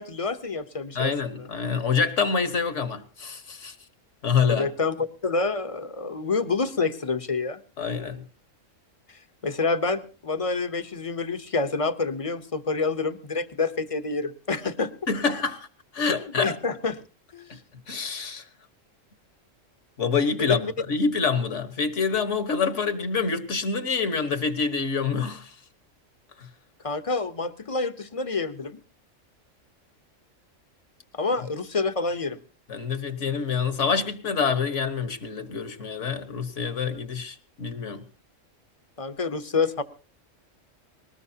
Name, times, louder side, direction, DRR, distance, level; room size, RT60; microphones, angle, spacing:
voice 1, 0.0-1.1 1.4-1.5 4.5-7.6 9.4-14.9 16.4-17.0 17.3-17.5 20.4-20.7 26.8-28.8 31.1-32.4 39.0-39.8, left 4 dB, 30° left, 0.8 m, -27 dB
voice 2, 0.9-3.7 4.2-4.7 7.8-8.2 15.1-15.7 15.9-16.6 17.5-17.6 17.9-18.4 20.0-25.5 26.4-26.5 32.7-38.0, left 5 dB, 70° left, 1.7 m, -26 dB
20.5 x 19.0 x 2.8 m
omnidirectional pair, 1.3 m